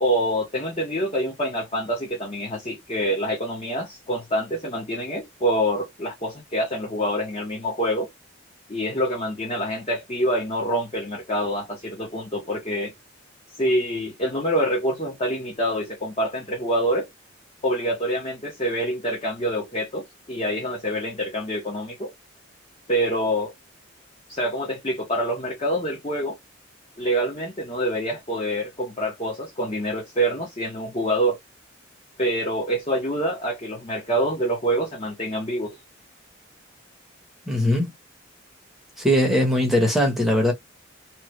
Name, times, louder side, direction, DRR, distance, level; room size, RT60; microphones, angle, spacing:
voice 1, 0.0-8.1 8.7-12.9 13.5-17.1 17.6-22.1 22.9-23.5 24.3-26.4 27.0-31.4 32.2-35.8, equal, 30° left, 0.9 m, -26 dB
voice 2, 37.5-37.9 39.0-40.5, left 1 dB, ahead, 0.9 m, -20 dB
3.1 x 2.2 x 3.0 m
head